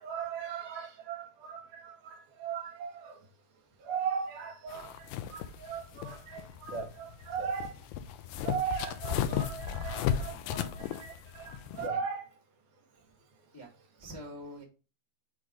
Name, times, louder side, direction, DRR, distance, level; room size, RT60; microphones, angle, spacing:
voice 1, 0.0-2.2 2.4-3.1 3.9-4.9 5.3-7.7 8.4-12.2, right 6 dB, 70° right, 2.4 m, -37 dB
sound 1, 4.7-11.9, left 9 dB, 80° left, 2.1 m, -35 dB
voice 2, 11.5-12.0 13.5-13.7 14.0-14.6, equal, 30° left, 0.4 m, -46 dB
6.2 x 3.0 x 5.1 m
omnidirectional pair, 3.9 m